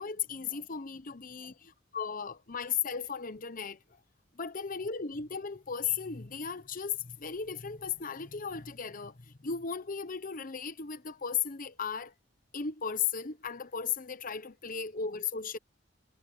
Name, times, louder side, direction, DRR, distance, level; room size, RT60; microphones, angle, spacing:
voice 1, 0.0-1.5 1.9-3.8 4.3-12.1 12.5-15.6, left 6 dB, 50° left, 1.0 m, -36 dB
head